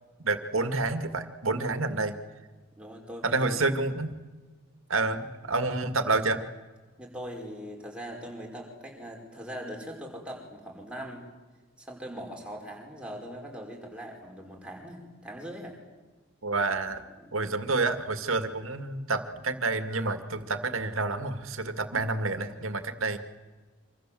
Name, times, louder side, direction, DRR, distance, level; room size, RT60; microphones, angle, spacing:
voice 1, 0.2-2.2 3.2-4.2 4.9-6.4 16.4-17.0 17.3-23.2, right 3 dB, 75° right, 9 dB, 2.1 m, -29 dB
voice 2, 2.8-3.5 7.0-11.3 11.8-15.8 17.2-17.4, equal, 5° right, -1 dB, 5.3 m, -41 dB
26.5 x 26.0 x 7.7 m, 1.3 s
head